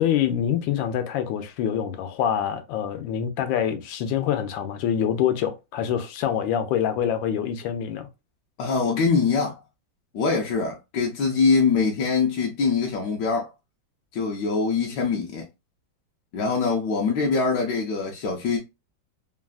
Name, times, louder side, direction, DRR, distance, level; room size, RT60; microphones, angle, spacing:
voice 1, 0.0-8.1, left 9 dB, 85° left, 1.3 m, -25 dB
voice 2, 8.6-9.6 10.1-13.5 14.1-15.5 16.3-18.6, left 4 dB, 70° left, 1.1 m, -23 dB
3.3 x 2.3 x 2.3 m
omnidirectional pair, 2.0 m